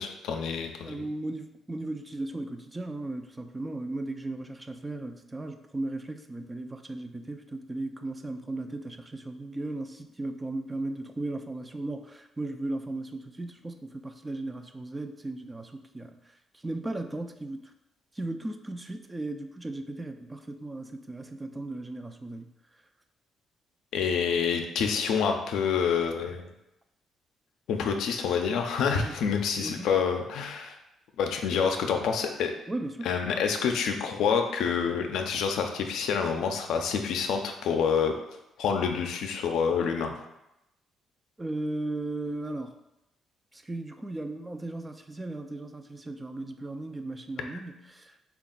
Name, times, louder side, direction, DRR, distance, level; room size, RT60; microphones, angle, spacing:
voice 1, 0.0-1.0 23.9-26.5 27.7-30.8 31.2-32.5 33.0-38.1 38.6-40.1, left 6 dB, 80° left, 4 dB, 0.4 m, -27 dB
voice 2, 0.8-16.2 16.6-17.7 18.2-22.5 29.0-29.4 29.6-30.0 32.7-33.1 41.4-42.7 43.5-48.2, right 2 dB, 20° right, 6 dB, 0.3 m, -36 dB
3.4 x 2.3 x 3.8 m, 0.88 s
cardioid pair, 90°, 0 cm